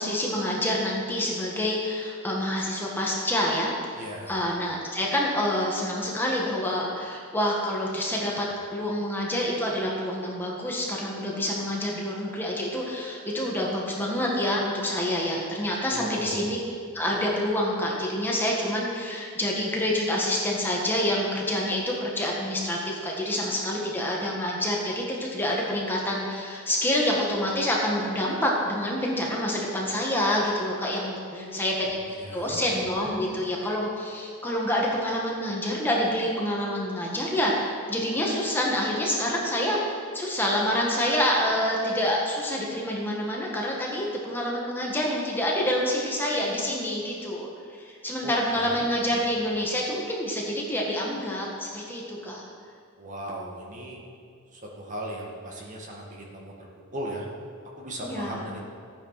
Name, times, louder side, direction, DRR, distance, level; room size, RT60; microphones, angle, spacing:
voice 1, 0.0-3.7 4.3-8.5 8.7-16.6 16.9-32.0 32.3-52.4 58.0-58.4, left 1 dB, 10° left, -3 dB, 1.7 m, -27 dB
voice 2, 3.9-4.3 15.9-16.6 31.3-31.8 32.1-32.7 48.2-48.9 53.0-54.0 54.5-57.3 57.8-58.6, equal, 35° right, -2 dB, 2.0 m, -37 dB
15.0 x 9.2 x 5.9 m, 2.2 s
head